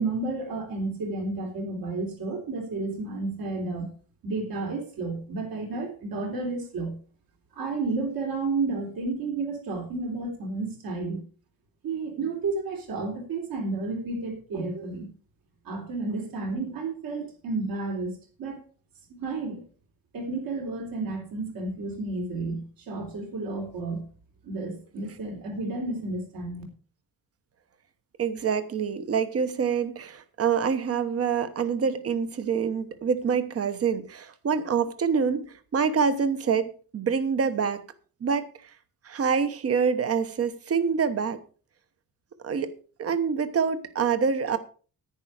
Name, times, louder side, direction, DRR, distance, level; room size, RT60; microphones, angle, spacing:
voice 1, 0.0-3.9 4.2-7.0 7.5-11.2 11.8-15.1 15.6-18.6 19.2-19.6 20.1-24.0 24.4-26.6, right 3 dB, 65° right, 3.6 m, -31 dB
voice 2, 28.2-37.8 38.2-38.5 39.0-41.4 42.4-42.7 43.0-44.6, right 6 dB, 40° right, 1.0 m, -26 dB
10.5 x 9.9 x 4.9 m
wide cardioid pair, 175°, 37 cm